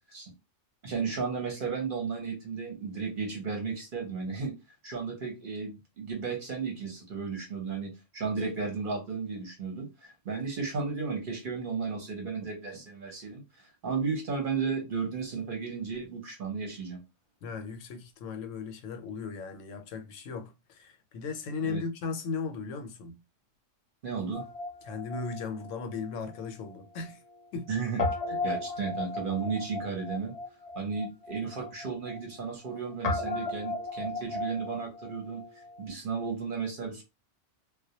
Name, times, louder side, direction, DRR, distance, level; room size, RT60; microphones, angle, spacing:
voice 1, 0.8-4.5 4.8-17.0 21.6-21.8 24.0-24.4 27.7-30.3 30.7-35.4 35.8-37.0, right 5 dB, 50° right, 0.7 m, -34 dB
voice 2, 17.4-23.2 24.8-27.2 27.5-27.7 28.3-28.4, left 5 dB, 80° left, 0.9 m, -37 dB
Guitar, 24.3-26.8 27.0-27.1 28.0-35.8, left 2 dB, 60° left, 0.4 m, -36 dB
2.2 x 2.1 x 2.7 m
omnidirectional pair, 1.3 m